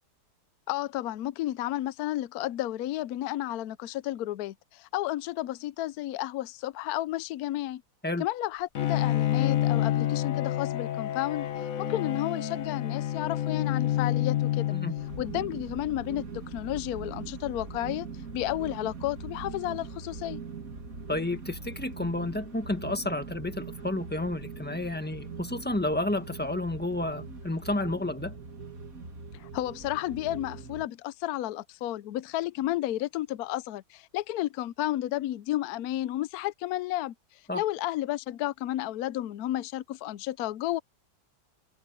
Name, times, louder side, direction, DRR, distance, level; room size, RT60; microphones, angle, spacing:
voice 1, 0.7-7.8 8.2-14.7 15.2-18.1 18.3-20.4 29.3-40.8, left 14 dB, 75° left, 0.8 m, -32 dB
Bowed string instrument, 8.7-15.4, left 12 dB, 50° left, 1.3 m, -28 dB
sound 1, 15.0-30.9, right 4 dB, 45° right, 2.6 m, -41 dB
voice 2, 21.1-28.3 37.5-37.6, left 2 dB, 5° left, 1.2 m, -31 dB
omnidirectional pair, 2.1 m